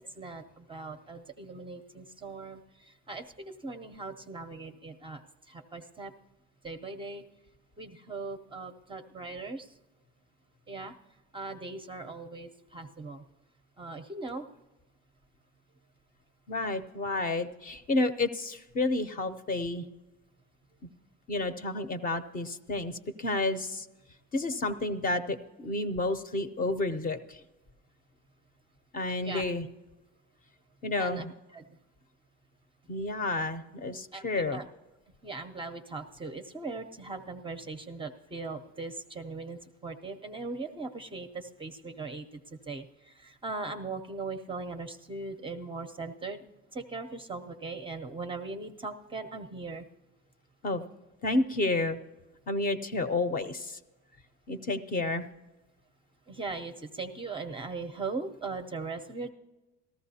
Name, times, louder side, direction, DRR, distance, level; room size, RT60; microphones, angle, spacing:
voice 1, 0.2-5.2 5.5-6.1 6.6-7.2 7.8-9.7 10.7-10.9 11.3-13.2 13.8-14.5 29.2-29.4 31.0-31.3 31.5-31.6 34.1-34.6 35.2-46.4 46.7-49.8 56.3-59.3, right 3 dB, 20° right, 6 dB, 0.5 m, -39 dB
voice 2, 16.5-19.9 21.3-23.9 24.3-27.4 28.9-29.7 30.8-31.3 32.9-34.6 50.6-50.8 51.2-52.0 52.5-53.8 54.5-55.3, left 2 dB, 30° left, 10 dB, 0.6 m, -30 dB
18.5 x 14.5 x 2.7 m, 1.1 s
cardioid pair, 145°, 30 cm